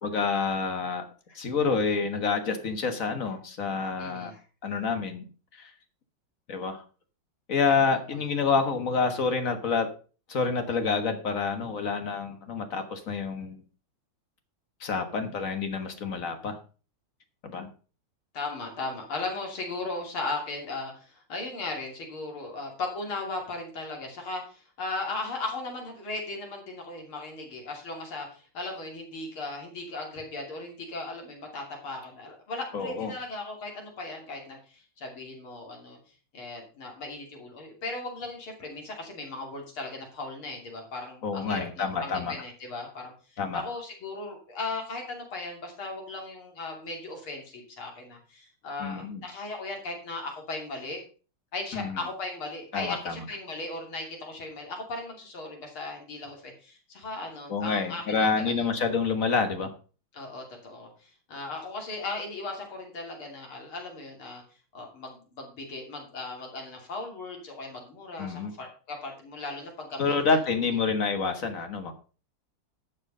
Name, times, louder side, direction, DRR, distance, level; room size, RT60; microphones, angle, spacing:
voice 1, 0.0-1.0 1.3-4.3 4.6-5.3 5.5-5.7 6.5-6.8 7.5-9.9 10.3-13.6 14.8-16.6 17.4-17.7 32.7-33.1 41.2-42.3 43.4-43.6 48.8-49.2 51.7-52.0 52.7-53.2 57.5-59.7 68.2-68.6 70.0-71.9, left 5 dB, 45° left, 7 dB, 1.7 m, -28 dB
voice 2, 3.8-4.4 18.3-36.0 36.3-51.0 51.5-58.6 60.1-64.4 64.7-70.2, left 3 dB, 85° left, 1 dB, 3.8 m, -37 dB
11.5 x 6.6 x 5.5 m, 0.37 s
omnidirectional pair, 2.3 m